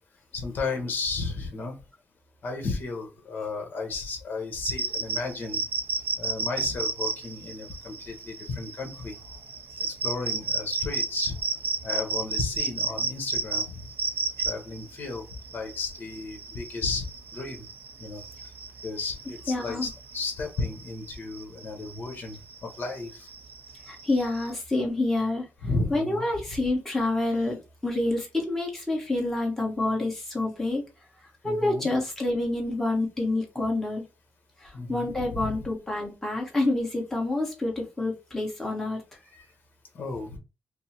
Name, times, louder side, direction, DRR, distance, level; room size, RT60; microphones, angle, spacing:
voice 1, 0.3-1.7 2.4-5.6 5.9-9.2 9.8-11.4 11.8-13.9 14.4-15.2 15.5-17.1 17.3-17.7 18.0-18.5 18.8-23.3 25.6-26.2 31.4-31.9 34.7-35.7 39.2-39.5 39.9-40.4, left 3 dB, 45° left, 3 dB, 1.2 m, -34 dB
sound 1, 4.6-24.5, right 4 dB, 50° right, 0.5 m, -33 dB
voice 2, 19.5-19.9 23.9-25.5 25.9-30.8 31.4-34.0 34.9-39.0, left 2 dB, 10° left, -1 dB, 1.1 m, -27 dB
5.2 x 2.0 x 2.9 m, 0.28 s
wide cardioid pair, 175°, 4 cm